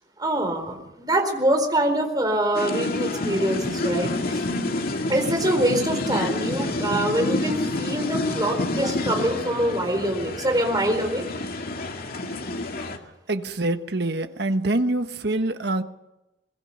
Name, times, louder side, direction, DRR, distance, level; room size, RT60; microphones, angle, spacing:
voice 1, 0.2-4.4 5.1-11.3, right 1 dB, 20° right, 4 dB, 4.3 m, -24 dB
sound 1, 2.5-13.0, left 2 dB, 55° left, 2.4 m, -28 dB
voice 2, 13.3-15.8, right 2 dB, 65° right, 8 dB, 1.4 m, -25 dB
23.0 x 22.5 x 6.7 m, 0.95 s
head